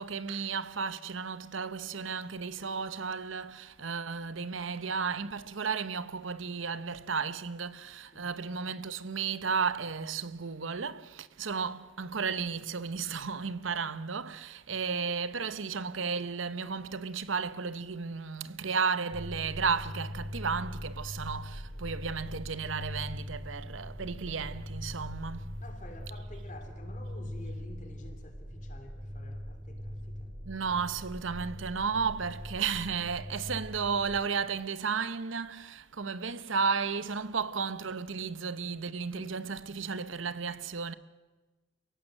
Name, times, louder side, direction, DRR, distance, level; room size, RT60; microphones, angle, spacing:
voice 1, 0.0-25.6 30.5-40.9, right 5 dB, 85° right, 0.9 m, -33 dB
voice 2, 8.1-8.4 25.6-30.3 32.3-32.4, left 1 dB, 40° left, 3.1 m, -50 dB
sound 1, 19.1-34.2, equal, 35° right, 3.2 m, -41 dB
29.5 x 17.0 x 7.7 m
head